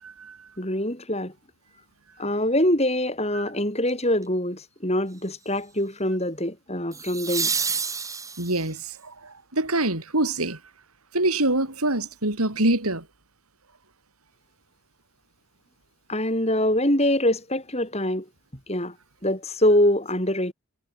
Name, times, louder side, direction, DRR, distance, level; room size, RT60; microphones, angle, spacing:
voice 1, 0.0-0.5 3.3-3.4 8.4-10.6 11.1-13.1, right 2 dB, 90° right, 7.6 m, -25 dB
voice 2, 0.6-1.3 2.2-7.5 16.1-18.3 18.7-18.9 19.2-20.5, left 1 dB, 30° left, 7.7 m, -24 dB
sound 1, 3.9-4.2 6.9-8.8 11.7-11.8, right 5 dB, 15° right, 5.7 m, -29 dB
head